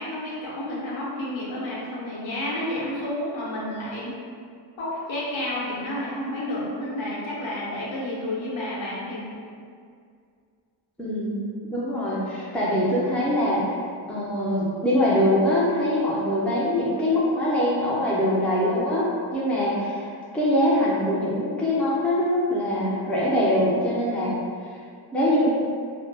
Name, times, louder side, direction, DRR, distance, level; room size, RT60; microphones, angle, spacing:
voice 1, 0.0-4.2 4.8-9.3, left 1 dB, 90° left, -7 dB, 0.8 m, -30 dB
voice 2, 11.0-13.7 14.1-24.3 25.1-25.5, left 1 dB, 5° left, -7 dB, 0.3 m, -23 dB
2.1 x 2.0 x 3.2 m, 2.2 s
wide cardioid pair, 140°, 46 cm